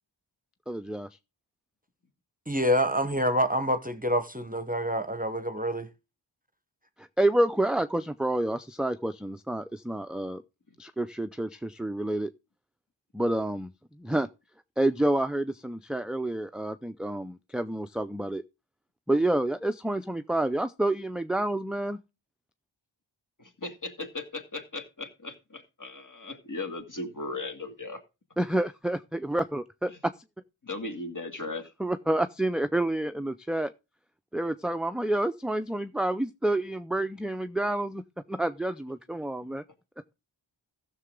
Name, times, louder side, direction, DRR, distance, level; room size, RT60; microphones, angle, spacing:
voice 1, 0.7-1.1 7.0-10.4 10.8-12.3 13.1-13.7 14.0-14.3 14.8-18.4 19.1-22.0 28.4-30.1 31.8-33.7 34.3-38.0 38.3-39.6, right 1 dB, ahead, 0.4 m, -28 dB
voice 2, 2.5-5.9, equal, 20° right, 0.9 m, -27 dB
voice 3, 23.4-28.0 29.9-30.0 30.6-31.7, left 2 dB, 40° left, 2.2 m, -37 dB
15.0 x 6.8 x 3.7 m
wide cardioid pair, 45°, 46 cm